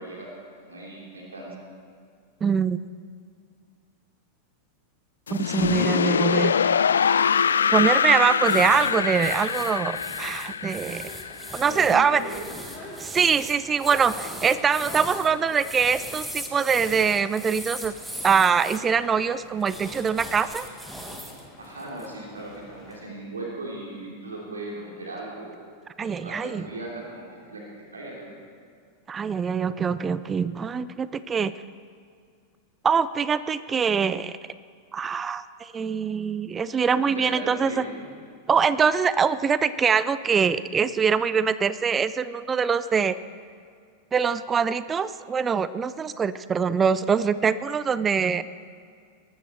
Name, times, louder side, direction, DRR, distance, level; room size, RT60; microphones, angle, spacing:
voice 1, 0.0-1.5 11.6-12.6 21.6-25.6 26.0-27.6 27.9-28.3 36.9-38.0, right 2 dB, 75° right, -3 dB, 3.1 m, -37 dB
voice 2, 2.4-2.8 5.3-6.6 7.7-11.1 11.5-12.2 13.0-17.9 18.2-20.7 26.0-26.6 29.1-31.5 32.8-34.4 34.9-37.8 38.5-43.2 44.1-48.4, right 6 dB, 20° right, 16 dB, 0.5 m, -23 dB
sound 1, 5.3-12.2, left 7 dB, 70° left, 0.3 m, -24 dB
sound 2, 8.4-18.8 19.6-21.4 21.8-22.1, equal, 5° right, 1.9 m, -39 dB
sound 3, 10.9-23.0, left 2 dB, 25° left, 4.6 m, -46 dB
22.0 x 13.0 x 4.5 m, 2.2 s
figure-of-eight pair, 90°, 0 cm